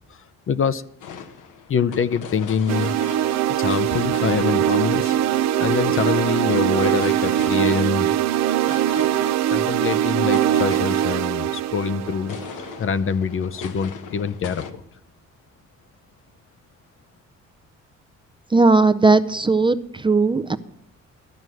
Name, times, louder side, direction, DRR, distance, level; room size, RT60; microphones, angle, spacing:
voice 1, 0.1-0.8 1.7-3.0 3.6-5.2 5.6-8.1 9.5-12.4 12.8-14.8, left 6 dB, 45° left, 13 dB, 0.6 m, -25 dB
sound 1, 1.0-14.7, left 6 dB, 85° left, 1.1 m, -39 dB
sound 2, 2.7-12.8, right 12 dB, 65° right, 0.5 m, -22 dB
Bowed string instrument, 3.9-7.1, left 6 dB, 60° left, 1.7 m, -37 dB
voice 2, 18.5-20.6, right 3 dB, 15° right, 11 dB, 0.5 m, -17 dB
13.0 x 6.2 x 9.2 m, 0.79 s
cardioid pair, 90°, 30 cm